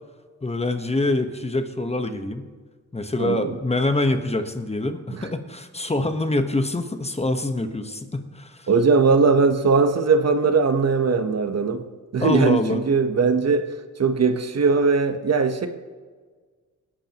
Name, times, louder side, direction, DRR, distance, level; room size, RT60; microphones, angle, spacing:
voice 1, 0.4-2.5 2.9-8.7 12.2-12.8, left 2 dB, 20° left, 8 dB, 1.1 m, -25 dB
voice 2, 3.2-3.6 5.1-5.2 8.7-11.8 12.1-13.7 14.0-15.7, right 4 dB, 55° right, 8 dB, 1.1 m, -20 dB
20.0 x 11.5 x 3.0 m, 1.5 s
cardioid pair, 80°, 30 cm